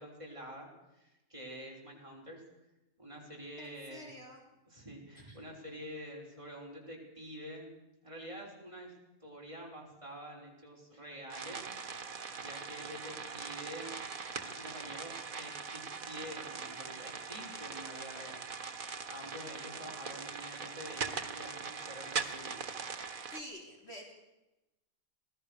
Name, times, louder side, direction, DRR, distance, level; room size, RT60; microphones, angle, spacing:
voice 1, 0.0-2.4 3.0-4.1 4.7-7.7 8.0-8.9 9.2-11.7 12.0-14.0 14.4-22.6, equal, 20° right, -1 dB, 6.0 m, -47 dB
voice 2, 3.6-4.4 5.3-5.4 15.9-16.0 19.8-20.0 22.2-22.4 23.3-24.1, left 1 dB, 45° left, 0 dB, 4.3 m, -49 dB
sound 1, 11.3-23.4, right 5 dB, 75° right, 1.9 m, -41 dB
26.0 x 18.0 x 6.8 m, 0.99 s
omnidirectional pair, 1.5 m